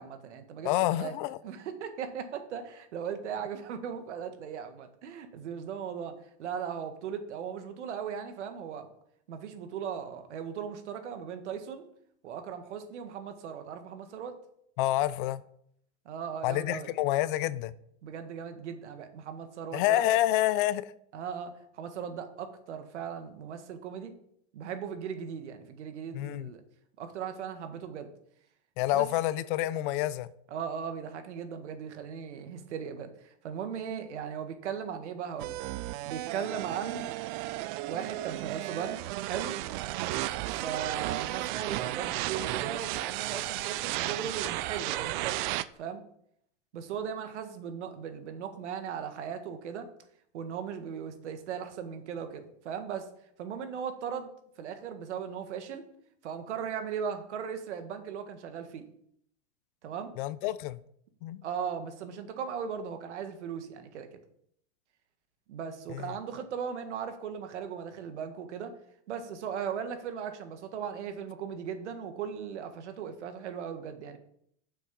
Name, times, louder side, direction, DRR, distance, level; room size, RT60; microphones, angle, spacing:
voice 1, 0.0-0.7 1.0-1.1 1.4-8.9 9.3-11.9 12.2-14.4 16.1-16.9 18.0-20.0 21.1-24.1 24.5-26.6 27.0-28.1 28.9-29.1 30.5-35.7 36.1-37.1 37.9-39.6 40.6-45.4 45.8-46.0 46.7-49.9 50.3-53.1 53.4-54.3 54.6-55.8 56.2-58.8 59.8-60.1 61.4-64.1 65.5-68.7 69.1-74.2, right 7 dB, 85° right, 1.7 m, -38 dB
voice 2, 0.6-1.4 14.8-15.4 16.4-17.8 19.7-20.9 26.1-26.5 28.8-30.3 60.2-60.8 61.2-61.4 65.9-66.1, left 14 dB, 50° left, 0.6 m, -28 dB
sound 1, 35.4-45.6, right 16 dB, 45° right, 0.5 m, -34 dB
7.6 x 6.3 x 6.8 m
supercardioid pair, 135°, 34 cm